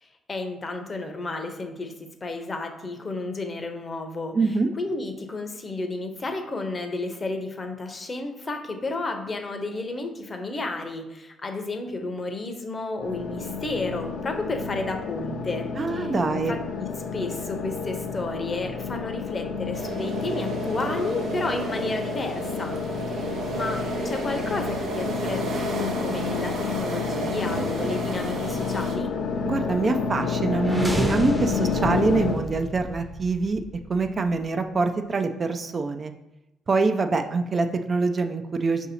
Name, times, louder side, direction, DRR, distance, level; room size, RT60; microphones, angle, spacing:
voice 1, 0.0-4.3 4.8-22.8 23.1-29.1, left 2 dB, 35° left, 5 dB, 0.6 m, -32 dB
voice 2, 4.3-4.7 15.8-16.5 29.4-33.6 33.9-36.1 36.7-38.9, right 4 dB, 40° right, 7 dB, 0.3 m, -25 dB
sound 1, 13.0-32.3, left 5 dB, 80° left, 0.6 m, -30 dB
sound 2, 19.7-29.0, right 3 dB, 70° right, 0.7 m, -33 dB
sound 3, 30.6-34.5, right 1 dB, 15° right, 0.7 m, -33 dB
4.7 x 2.7 x 4.1 m, 0.95 s
cardioid pair, 90°, 0 cm